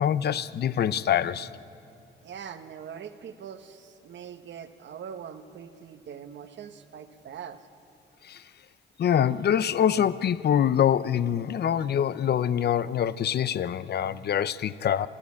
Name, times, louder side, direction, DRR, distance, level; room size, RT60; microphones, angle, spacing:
voice 1, 0.0-1.5 8.3-8.4 9.0-15.1, left 9 dB, 55° left, 16 dB, 0.7 m, -25 dB
voice 2, 2.2-7.7, right 8 dB, 65° right, 9 dB, 1.2 m, -42 dB
29.0 x 14.0 x 8.5 m, 2.7 s
cardioid pair, 85°, 20 cm